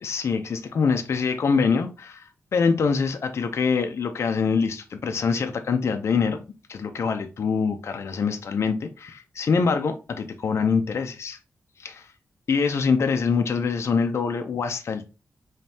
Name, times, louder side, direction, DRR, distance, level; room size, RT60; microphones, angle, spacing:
voice 1, 0.0-6.4 6.7-11.4 11.8-12.1 12.5-15.1, left 5 dB, 65° left, 0.6 m, -24 dB
5.2 x 3.2 x 2.8 m
wide cardioid pair, 120°, 5 cm